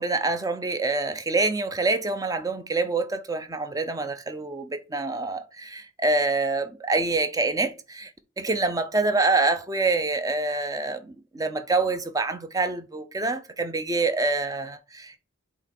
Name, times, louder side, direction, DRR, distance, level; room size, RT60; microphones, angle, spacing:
voice 1, 0.0-8.1 8.4-15.2, right 3 dB, 20° right, 0.6 m, -26 dB
7.8 x 3.0 x 4.2 m
head